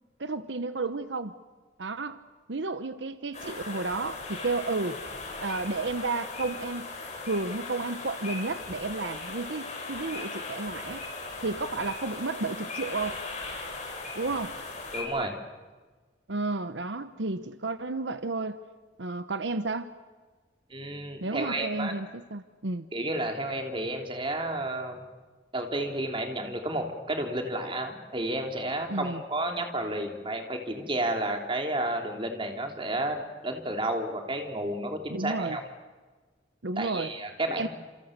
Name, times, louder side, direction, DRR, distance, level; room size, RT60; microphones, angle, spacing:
voice 1, 0.2-1.3 1.8-2.2 2.5-5.0 5.4-6.9 7.3-11.0 11.4-13.2 14.1-14.6 16.3-18.6 19.0-19.9 21.2-22.9 28.9-29.2 35.1-35.6 36.6-37.1 37.5-37.7, right 3 dB, 80° right, 11 dB, 1.0 m, -32 dB
sound 1, 3.3-15.0, left 3 dB, 40° left, 7.5 m, -38 dB
voice 2, 14.9-15.4 20.7-21.9 22.9-25.1 25.5-35.6 36.8-37.7, right 1 dB, 30° right, 3 dB, 3.4 m, -31 dB
29.5 x 28.5 x 6.7 m, 1.4 s
head